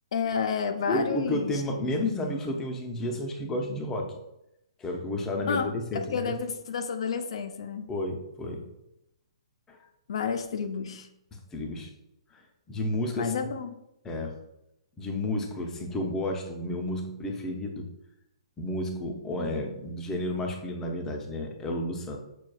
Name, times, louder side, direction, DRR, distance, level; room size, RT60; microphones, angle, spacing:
voice 1, 0.1-1.6 5.5-7.9 10.1-11.1 13.2-13.7, left 6 dB, 65° left, 6 dB, 0.4 m, -30 dB
voice 2, 0.9-4.1 4.8-6.3 7.9-8.7 9.7-9.8 11.3-11.9 12.3-12.4 12.7-13.3 14.0-14.3 15.0-17.9 18.6-22.2, left 1 dB, 15° left, 1 dB, 0.5 m, -31 dB
6.0 x 2.3 x 2.3 m, 0.85 s
hypercardioid pair, 140°, 3 cm